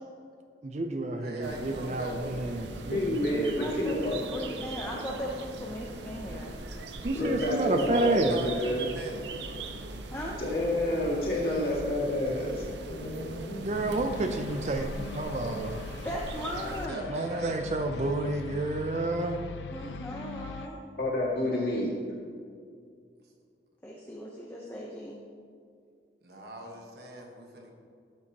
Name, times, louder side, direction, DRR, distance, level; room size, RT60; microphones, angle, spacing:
voice 1, 0.6-3.7 7.0-8.4 13.6-15.8 17.1-19.4, right 2 dB, 40° right, 5 dB, 0.4 m, -30 dB
voice 2, 1.2-2.6 7.7-9.3 11.3-11.6 16.4-17.7 26.2-27.7, equal, 65° right, 1 dB, 1.3 m, -40 dB
sound 1, 1.4-16.9, right 2 dB, 80° right, 0.6 m, -40 dB
voice 3, 2.9-4.4 7.1-8.9 10.4-14.3 21.0-21.9, left 1 dB, 55° left, -5 dB, 2.2 m, -30 dB
voice 4, 3.5-6.6 10.1-10.3 16.0-17.2 19.7-20.8 23.8-25.2, equal, 10° left, -3 dB, 0.7 m, -37 dB
sound 2, 13.7-20.7, left 5 dB, 85° left, 0.4 m, -42 dB
12.5 x 7.3 x 2.9 m, 2.2 s
head